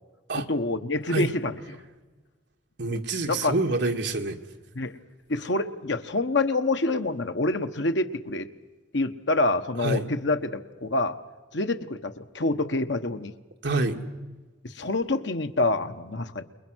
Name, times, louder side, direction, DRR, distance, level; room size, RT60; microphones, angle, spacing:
voice 1, 0.3-1.6 2.9-3.0 3.3-3.5 4.7-5.0 5.3-8.5 8.9-11.1 11.5-13.3 14.6-16.4, left 2 dB, 65° left, 8 dB, 1.2 m, -27 dB
voice 2, 2.8-4.4 9.8-10.1 13.6-14.0, right 2 dB, 60° right, 4 dB, 2.0 m, -26 dB
29.0 x 22.0 x 6.3 m, 1.3 s
head